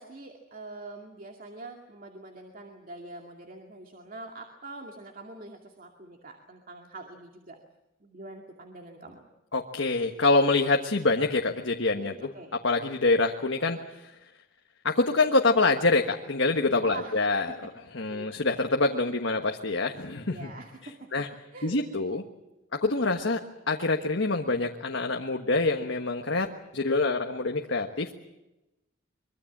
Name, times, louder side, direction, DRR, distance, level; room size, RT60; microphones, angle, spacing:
voice 1, 0.0-7.6 8.0-9.3 12.0-12.5 16.8-17.7 18.1-18.3 20.3-21.3 21.5-21.8, right 2 dB, 45° right, 2 dB, 2.3 m, -44 dB
voice 2, 9.5-12.3 12.6-14.1 14.8-17.5 17.9-20.5 21.1-21.3 21.6-22.2 22.8-23.4 23.7-26.5 26.7-28.1, left 3 dB, 65° left, 3 dB, 1.4 m, -25 dB
24.0 x 23.0 x 7.4 m, 0.98 s
head